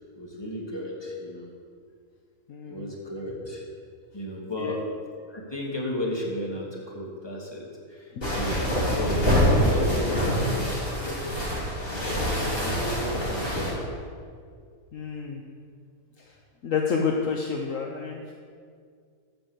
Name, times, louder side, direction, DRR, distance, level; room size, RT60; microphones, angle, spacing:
voice 1, 0.1-1.5 2.7-3.6 4.1-4.8 5.3-13.7, left 1 dB, 15° left, -3 dB, 2.3 m, -34 dB
voice 2, 2.5-2.9 4.6-4.8 14.9-15.4 16.6-18.3, left 5 dB, 65° left, 1 dB, 1.2 m, -29 dB
sound 1, 8.2-13.7, equal, 40° left, 3.4 m, -25 dB
13.5 x 6.1 x 8.0 m, 2.2 s
omnidirectional pair, 1.5 m